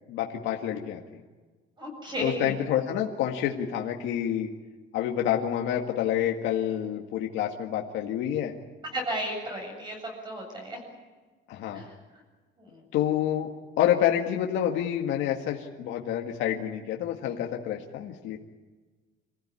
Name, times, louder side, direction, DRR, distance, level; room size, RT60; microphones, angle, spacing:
voice 1, 0.1-1.0 2.2-4.5 4.9-8.5 11.5-11.8 12.9-13.5 13.8-18.4, left 10 dB, 75° left, 1 dB, 1.9 m, -28 dB
voice 2, 1.8-2.6 8.8-10.8 11.7-11.9 12.6-12.8, equal, 20° right, 2 dB, 8.0 m, -34 dB
27.5 x 15.5 x 9.9 m, 1.3 s
cardioid pair, 175°, 20 cm